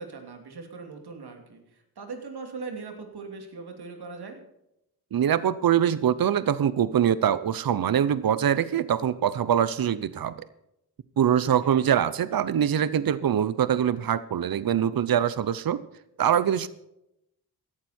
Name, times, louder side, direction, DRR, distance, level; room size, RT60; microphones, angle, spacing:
voice 1, 0.0-4.4 11.6-11.8, right 4 dB, 80° right, 4 dB, 2.9 m, -40 dB
voice 2, 5.1-10.3 11.2-15.8 16.2-16.7, right 9 dB, 65° right, 15 dB, 0.8 m, -23 dB
16.0 x 12.0 x 4.4 m, 0.82 s
cardioid pair, 60°, 38 cm